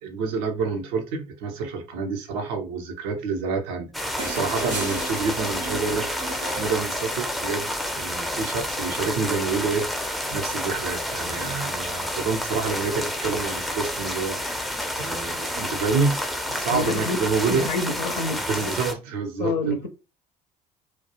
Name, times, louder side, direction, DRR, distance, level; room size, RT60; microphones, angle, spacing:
voice 1, 0.0-3.9 4.2-7.7 8.0-9.9 10.3-14.7 15.0-17.7 18.5-19.9, right 4 dB, 65° right, 0.7 m, -28 dB
sound 1, 3.9-18.9, equal, ahead, 0.5 m, -29 dB
sound 2, 4.2-7.5 9.0-9.1, right 2 dB, 90° right, 1.0 m, -34 dB
voice 2, 16.7-17.2 17.5-18.4 19.4-19.9, left 2 dB, 85° left, 0.5 m, -27 dB
2.3 x 2.2 x 2.8 m
hypercardioid pair, 55°, 21 cm